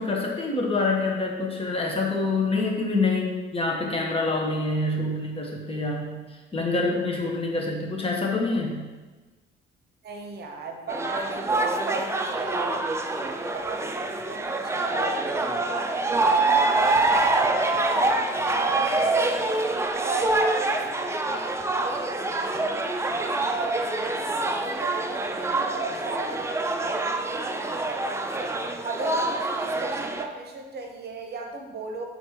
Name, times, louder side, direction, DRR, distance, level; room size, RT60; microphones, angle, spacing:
voice 1, 0.0-8.8, left 3 dB, 30° left, -1 dB, 1.2 m, -26 dB
voice 2, 10.0-16.0 16.3-19.7 20.0-23.1 23.5-28.5 28.8-32.0, right 3 dB, 55° right, 2 dB, 0.9 m, -36 dB
sound 1, 10.9-30.2, right 2 dB, 15° right, 0.5 m, -26 dB
7.4 x 4.3 x 3.0 m, 1.3 s
cardioid pair, 90°, 20 cm